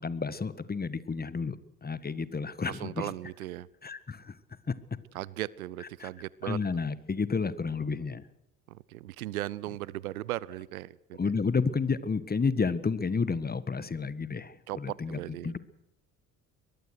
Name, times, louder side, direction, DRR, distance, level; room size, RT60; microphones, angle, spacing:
voice 1, 0.0-1.6 1.8-3.1 3.8-4.4 4.7-4.8 6.0-6.1 6.4-8.3 11.2-15.6, left 5 dB, 20° left, 16 dB, 1.6 m, -31 dB
voice 2, 2.7-3.7 5.1-6.6 8.7-11.2 14.7-15.5, right 15 dB, 80° right, 23 dB, 0.7 m, -37 dB
23.0 x 19.5 x 6.4 m, 0.86 s
figure-of-eight pair, 55°, 43 cm